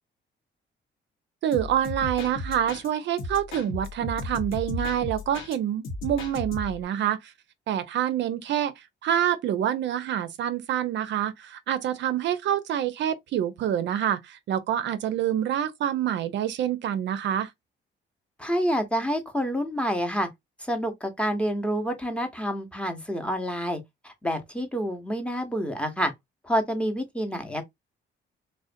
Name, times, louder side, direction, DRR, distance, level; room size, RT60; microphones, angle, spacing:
voice 1, 1.4-7.3 7.7-17.5, right 10 dB, 65° right, 0.4 m, -27 dB
sound 1, 1.5-2.9 3.2-5.6 5.8-6.9, left 3 dB, 85° left, 0.8 m, -35 dB
voice 2, 18.4-20.3 20.6-26.1 26.4-27.6, equal, 5° left, 0.6 m, -28 dB
2.4 x 2.1 x 2.4 m
cardioid pair, 90°, 20 cm